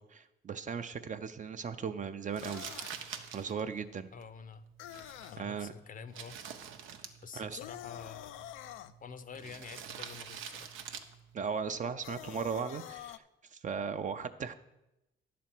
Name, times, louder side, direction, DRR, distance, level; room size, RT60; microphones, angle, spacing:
voice 1, 0.0-2.6 3.3-4.1 5.4-5.7 7.3-7.6 11.3-13.2 13.5-14.5, right 6 dB, 40° right, 9 dB, 0.6 m, -37 dB
Crumpling crinkling, 2.3-12.5, right 7 dB, 85° right, 0.8 m, -48 dB
sound 1, 2.4-3.0 4.8-5.4 7.6-8.9 12.0-13.2, left 12 dB, 85° left, 0.4 m, -46 dB
voice 2, 4.1-4.6 5.3-6.4 7.2-8.4 9.0-10.7, left 6 dB, 45° left, 13 dB, 0.6 m, -47 dB
10.5 x 4.2 x 7.6 m, 0.92 s
cardioid pair, 90°, 20 cm